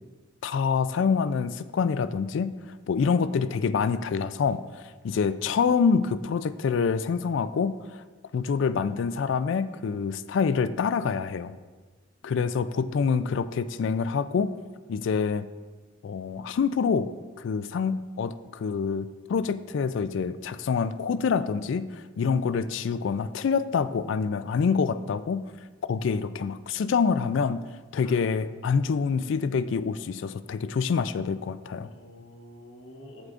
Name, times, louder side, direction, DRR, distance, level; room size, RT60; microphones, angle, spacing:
voice 1, 0.4-2.5 2.9-4.6 5.0-8.0 8.3-11.6 12.2-14.6 14.9-15.5 16.0-17.1 17.4-25.4 25.9-27.6 27.9-31.9, left 5 dB, 65° left, 14 dB, 0.3 m, -26 dB
voice 2, 12.2-13.4 28.0-28.2 31.9-33.3, left 1 dB, 80° left, 0 dB, 1.1 m, -50 dB
14.0 x 4.8 x 2.5 m, 1.4 s
head